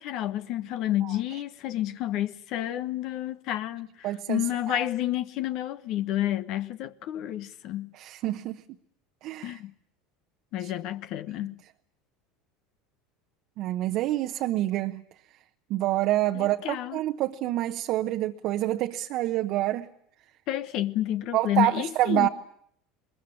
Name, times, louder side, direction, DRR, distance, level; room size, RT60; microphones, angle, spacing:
voice 1, 0.0-7.9 9.4-9.7 10.5-11.6 16.3-17.0 20.5-22.3, left 13 dB, 55° left, 1.1 m, -30 dB
voice 2, 1.0-1.4 4.0-4.9 7.9-8.6 9.2-9.6 10.6-10.7 13.6-15.0 15.7-19.9 21.3-22.3, right 15 dB, 55° right, 1.0 m, -27 dB
22.5 x 21.5 x 9.9 m
hypercardioid pair, 75°, 0 cm